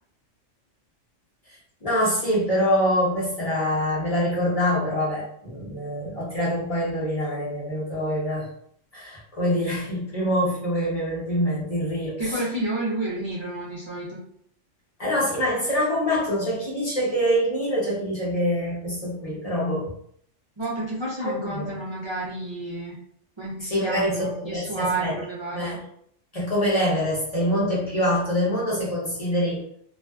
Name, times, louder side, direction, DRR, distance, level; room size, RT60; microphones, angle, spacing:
voice 1, 1.5-8.5 8.9-12.4 15.0-19.9 21.2-21.7 23.6-25.1 25.5-25.8 26.3-29.6, equal, 35° left, -7 dB, 0.9 m, -25 dB
voice 2, 12.2-14.2 20.6-23.0 23.4-25.8, right 2 dB, 45° right, -7 dB, 0.3 m, -30 dB
2.4 x 2.4 x 2.3 m, 0.66 s
omnidirectional pair, 1.3 m